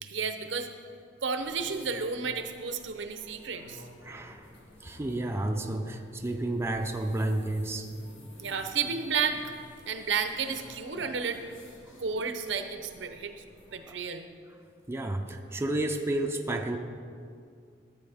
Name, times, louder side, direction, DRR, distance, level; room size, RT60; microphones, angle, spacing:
voice 1, 0.0-0.7 1.2-3.8 8.4-9.4 9.9-11.4 12.0-13.3 13.7-14.2, right 5 dB, 70° right, 8 dB, 0.7 m, -32 dB
sound 1, 1.3-13.9, left 1 dB, 85° left, 1.6 m, -52 dB
voice 2, 4.0-4.5 4.8-7.9 11.9-12.0 13.9-14.0 14.9-16.8, right 1 dB, 15° right, 3 dB, 0.5 m, -31 dB
13.5 x 8.6 x 3.5 m, 2.3 s
head